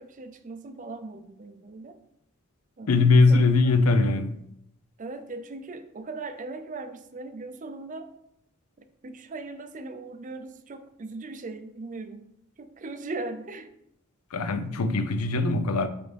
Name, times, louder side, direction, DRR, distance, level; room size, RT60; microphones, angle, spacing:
voice 1, 0.0-2.0 2.8-3.7 5.0-8.1 9.0-12.2 12.6-13.7, right 3 dB, 35° right, 0.5 m, -39 dB
voice 2, 2.9-4.4 14.3-15.9, left 3 dB, 85° left, 0.6 m, -21 dB
8.0 x 3.5 x 3.4 m
head